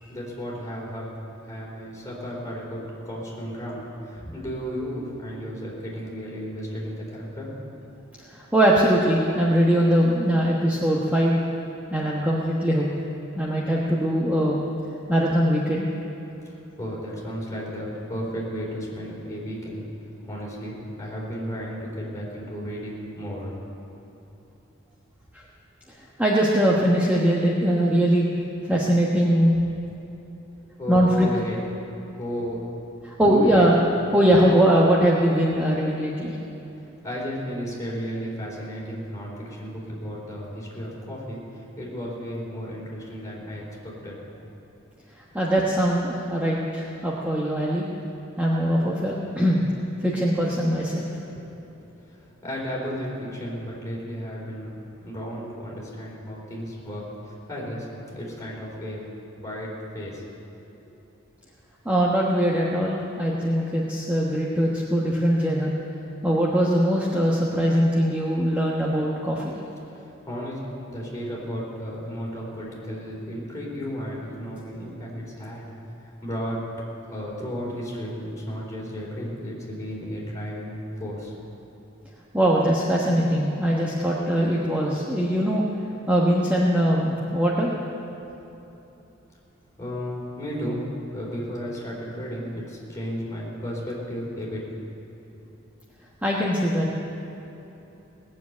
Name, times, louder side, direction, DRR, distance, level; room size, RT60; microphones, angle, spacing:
voice 1, 0.1-7.6 16.5-19.9 20.2-23.5 30.8-31.6 32.2-32.7 33.2-33.7 37.0-44.5 51.8-59.1 59.4-60.2 69.9-75.7 76.0-76.7 77.1-81.3 89.8-90.8 91.1-94.6 95.3-95.4, equal, 15° left, -5 dB, 4.1 m, -34 dB
voice 2, 8.3-11.4 11.9-12.9 13.4-14.6 15.1-15.9 26.2-28.3 28.7-29.5 30.9-31.3 33.0-33.8 34.1-36.3 45.3-47.9 48.4-49.6 50.0-51.1 61.8-65.7 66.2-69.5 82.3-85.6 86.1-87.7 96.2-96.9, equal, 10° right, -5 dB, 1.2 m, -21 dB
18.5 x 7.5 x 9.4 m, 3.0 s
head